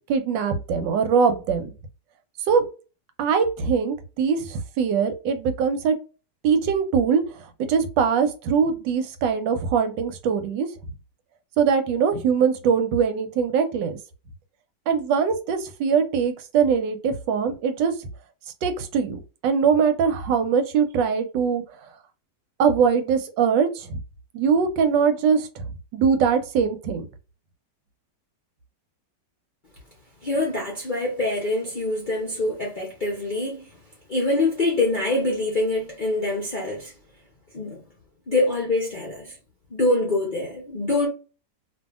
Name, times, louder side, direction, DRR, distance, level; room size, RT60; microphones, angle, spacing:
voice 1, 0.0-1.7 2.5-2.6 3.2-5.9 6.4-7.2 7.6-10.7 11.6-14.0 14.9-17.9 18.6-21.6 22.6-24.0 24.3-25.6 25.9-27.1, right 6 dB, 85° right, 1.3 m, -22 dB
voice 2, 30.2-33.7 34.1-36.9 37.5-37.8 38.3-39.3 39.7-41.1, left 2 dB, 55° left, 0.5 m, -25 dB
2.7 x 2.6 x 2.3 m
omnidirectional pair, 1.9 m